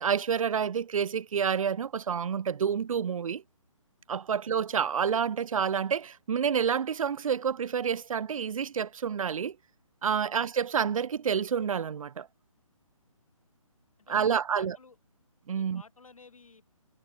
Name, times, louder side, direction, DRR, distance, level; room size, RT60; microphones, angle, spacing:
voice 1, 0.0-3.4 4.1-9.6 10.0-12.3 14.1-14.8 15.5-15.8, right 7 dB, 70° right, 0.4 m, -28 dB
voice 2, 14.0-15.0 15.5-16.7, left 4 dB, 70° left, 5.9 m, -54 dB
figure-of-eight pair, 145°, 18 cm